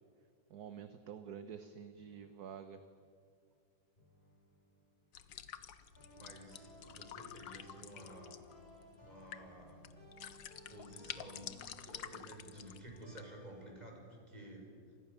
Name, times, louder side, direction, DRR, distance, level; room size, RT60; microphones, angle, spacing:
voice 1, 0.5-2.8, right 7 dB, 60° right, 9 dB, 1.5 m, -48 dB
sound 1, 0.7-3.3 4.0-5.5 6.0-13.7, left 1 dB, 30° left, 6.0 m, -60 dB
sound 2, 5.1-13.2, left 9 dB, 80° left, 1.8 m, -50 dB
voice 2, 6.1-8.4 9.0-9.8 10.7-14.7, right 1 dB, 20° right, 0 dB, 6.4 m, -53 dB
29.5 x 27.0 x 7.0 m, 2.2 s
omnidirectional pair, 2.0 m